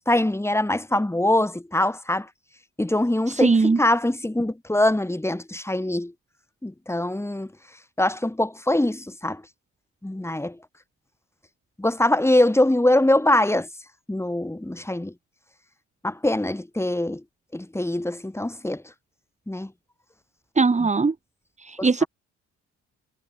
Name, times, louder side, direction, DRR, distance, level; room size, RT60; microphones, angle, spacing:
voice 1, 0.1-2.3 2.8-6.1 6.6-7.5 8.0-9.4 10.0-10.6 11.8-13.7 14.1-15.1 16.0-17.2 17.5-18.8 19.5-19.7 20.8-20.9 21.8-22.1, left 1 dB, 10° left, 5.9 m, -23 dB
voice 2, 3.3-3.8 20.6-21.1 21.6-22.0, right 4 dB, 25° right, 1.9 m, -20 dB
cardioid pair, 90°, 30 cm